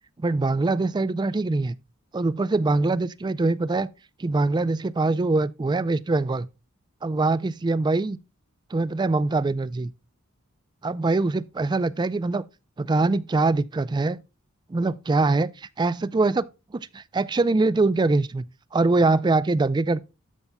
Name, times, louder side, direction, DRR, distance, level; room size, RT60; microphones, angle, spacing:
voice 1, 0.2-1.7 2.1-3.9 4.2-6.5 7.0-8.2 8.7-9.9 10.8-12.4 12.8-14.2 14.7-16.4 16.7-18.5 18.7-20.0, right 3 dB, 20° right, 0.3 m, -23 dB
12.5 x 5.3 x 2.2 m
head